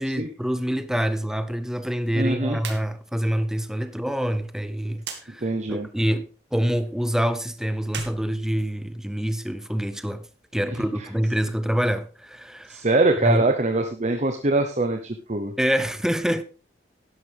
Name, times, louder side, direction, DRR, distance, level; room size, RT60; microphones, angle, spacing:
voice 1, 0.0-10.3 10.5-12.8 13.2-13.4 15.6-16.4, equal, 5° right, 0.7 m, -26 dB
voice 2, 2.1-2.6 5.4-5.9 12.7-15.5, right 2 dB, 40° right, 1.0 m, -23 dB
sound 1, 2.6-2.9 3.2-3.3 5.0-5.2 7.8-9.1, right 6 dB, 85° right, 2.1 m, -37 dB
11.5 x 11.0 x 3.6 m
head